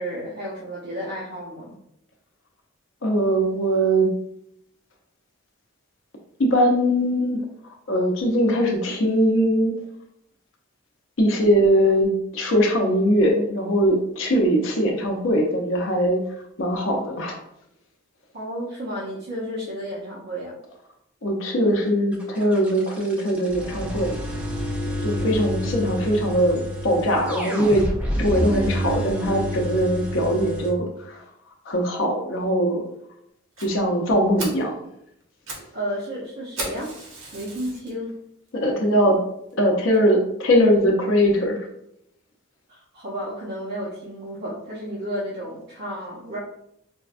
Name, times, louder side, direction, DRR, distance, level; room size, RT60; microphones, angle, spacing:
voice 1, 0.0-1.7 18.3-20.6 35.7-36.9 37.3-38.1 42.7-46.4, equal, 50° right, -7 dB, 0.8 m, -32 dB
voice 2, 3.0-4.1 6.4-7.4 7.9-9.7 11.2-16.2 16.6-17.4 21.2-24.2 25.0-27.9 28.2-31.2 31.7-32.8 33.6-34.7 38.5-39.2 39.6-41.7, equal, 70° left, 1 dB, 0.6 m, -21 dB
sound 1, 22.1-30.7, equal, 5° right, 0.4 m, -28 dB
Fire, 33.6-33.7 34.1-34.2 34.4-34.7 35.2-35.7 36.0-36.1 36.6-37.9 38.5-38.6 39.1-39.2 39.5-39.6 39.9-40.0, right 2 dB, 75° right, 1.0 m, -35 dB
4.4 x 2.2 x 2.4 m, 0.76 s
head